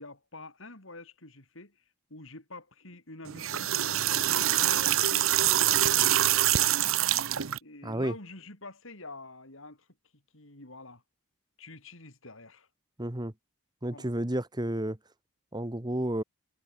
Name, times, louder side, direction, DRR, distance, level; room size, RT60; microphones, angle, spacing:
voice 1, 0.0-1.8 2.1-6.7 7.6-9.9 10.1-11.0 11.6-12.7 13.9-14.1, left 2 dB, 65° left, 5.4 m, -47 dB
sound 1, 3.3-7.6, right 12 dB, 75° right, 0.9 m, -25 dB
voice 2, 7.8-8.1 13.0-13.3 13.8-15.0 15.5-16.2, right 1 dB, 20° right, 1.4 m, -31 dB
head